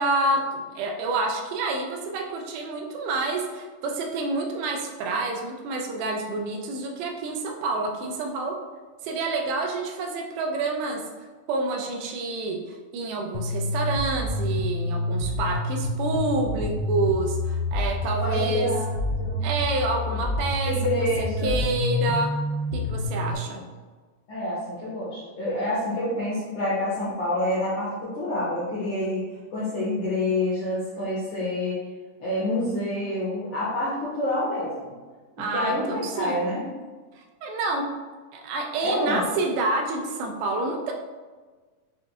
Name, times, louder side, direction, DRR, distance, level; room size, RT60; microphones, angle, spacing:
voice 1, 0.0-8.6 9.0-11.0 11.5-18.7 19.4-20.8 21.4-22.3 22.7-23.6 35.4-36.4 37.4-37.9 38.3-40.9, right 2 dB, 80° right, 3 dB, 2.1 m, -28 dB
sound 1, 13.3-23.3, left 1 dB, 85° left, 2.2 m, -28 dB
voice 2, 18.2-18.8 19.2-19.5 20.1-20.2 20.7-21.6 23.5-23.6 24.3-29.3 29.5-31.7 32.2-34.9 35.5-36.6 38.8-39.3, left 1 dB, 70° left, -9 dB, 1.3 m, -27 dB
6.5 x 2.6 x 2.6 m, 1.4 s
omnidirectional pair, 3.8 m